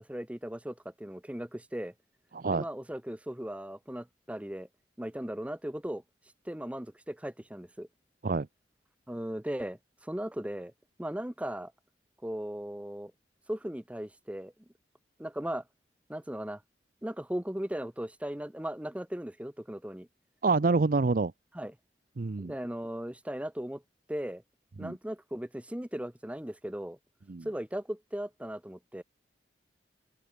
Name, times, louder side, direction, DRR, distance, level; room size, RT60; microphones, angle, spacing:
voice 1, 0.0-1.9 2.5-4.7 5.0-6.0 6.5-7.9 9.1-10.7 11.0-11.7 12.2-13.1 13.5-14.5 15.2-15.6 16.1-16.6 17.0-20.1 21.5-21.7 22.4-23.8 24.1-24.4 24.8-27.0 27.4-29.0, right 1 dB, 10° right, 0.7 m, -37 dB
voice 2, 2.3-2.7 8.2-8.5 20.4-21.3 22.2-22.5 24.8-24.9 27.3-27.5, right 3 dB, 50° right, 0.6 m, -27 dB
open air
head